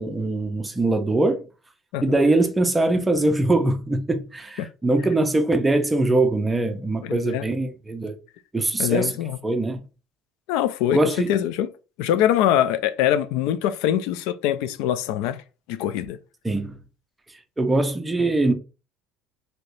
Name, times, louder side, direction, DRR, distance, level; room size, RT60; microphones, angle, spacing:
voice 1, 0.0-1.5 2.0-8.2 8.5-9.1 9.4-9.8 10.9-11.3 16.4-16.8 17.6-18.5, right 2 dB, 10° right, 0.5 m, -22 dB
voice 2, 7.0-7.4 8.8-9.4 10.5-11.0 11.3-11.7 12.0-15.4 15.7-16.2, left 11 dB, 75° left, 0.3 m, -23 dB
3.3 x 2.7 x 2.5 m
cardioid pair, 155°, 0 cm